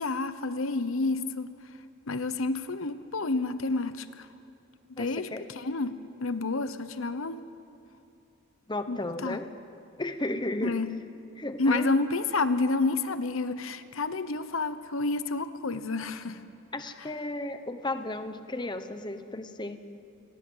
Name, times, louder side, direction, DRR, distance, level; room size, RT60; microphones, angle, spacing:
voice 1, 0.0-1.5 2.1-4.3 4.9-5.9 6.2-7.4 8.9-9.4 10.6-10.9 11.6-16.4, left 3 dB, 75° left, 12 dB, 1.0 m, -29 dB
voice 2, 5.0-5.6 8.7-9.5 10.0-10.8 11.4-11.9 16.7-19.8, left 2 dB, 20° left, 9 dB, 1.0 m, -34 dB
29.0 x 21.5 x 8.0 m, 2.7 s
head